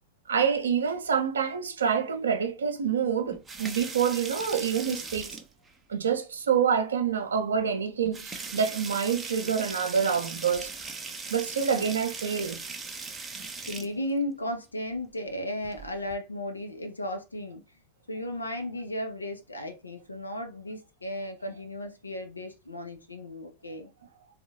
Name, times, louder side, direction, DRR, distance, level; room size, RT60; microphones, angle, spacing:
voice 1, 0.3-5.4 5.9-10.7 11.3-12.6, right 7 dB, 70° right, 0.5 m, -27 dB
sound 1, 3.3-5.7 7.1-7.2 7.6-7.7 8.0-13.9 15.6-16.1, right 4 dB, 15° right, 0.5 m, -39 dB
voice 2, 13.7-17.6 18.1-23.9, left 1 dB, 80° left, 0.5 m, -35 dB
3.5 x 2.4 x 2.8 m
figure-of-eight pair, 90°, 0 cm